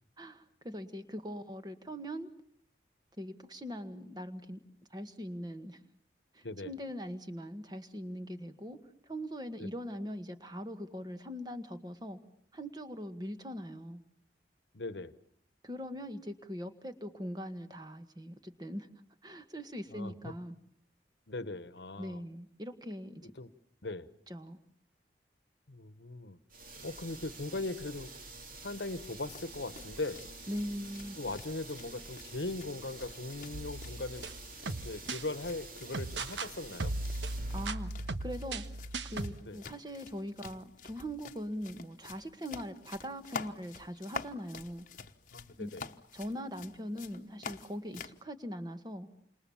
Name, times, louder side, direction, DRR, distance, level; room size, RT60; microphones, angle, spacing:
voice 1, 0.2-2.3 3.2-4.6 4.9-5.8 6.3-8.8 9.1-12.2 12.5-14.0 15.6-18.9 19.2-20.6 22.0-23.3 24.3-24.6 30.5-31.2 37.5-44.9 45.6-45.7 46.1-49.1, equal, 25° right, 9 dB, 1.7 m, -41 dB
voice 2, 14.7-15.1 19.9-20.3 21.3-22.2 23.2-23.5 23.8-24.1 25.7-26.4 26.8-28.1 28.6-30.2 31.2-34.3 34.6-36.9 39.4-39.6 45.3-45.8, left 2 dB, 75° left, 14 dB, 1.2 m, -39 dB
sound 1, 26.5-37.7, right 3 dB, 50° right, 3.0 m, -48 dB
sound 2, 29.1-48.2, left 5 dB, 45° left, 1.1 m, -49 dB
sound 3, 33.5-35.2 35.9-36.5 36.8-39.4, right 2 dB, 90° right, 1.2 m, -37 dB
29.5 x 27.0 x 7.2 m, 0.66 s
head